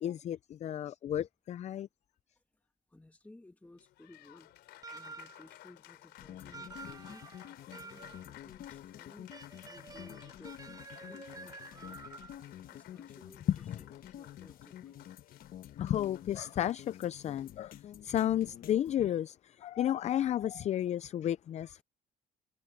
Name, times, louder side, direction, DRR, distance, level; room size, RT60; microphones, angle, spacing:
voice 1, 0.0-1.9 13.5-13.8 15.8-17.7 18.0-21.8, left 11 dB, 40° left, 0.4 m, -32 dB
voice 2, 2.9-7.3 7.7-12.0 12.6-13.5 13.8-15.1 19.7-19.8, left 2 dB, 10° left, 1.5 m, -58 dB
Applause, 3.6-18.3, left 15 dB, 80° left, 3.4 m, -57 dB
sound 1, 4.8-5.5 6.5-8.3 9.3-12.5, right 4 dB, 20° right, 4.1 m, -50 dB
sound 2, 6.2-19.1, left 11 dB, 60° left, 1.3 m, -50 dB
cardioid pair, 110°, 17 cm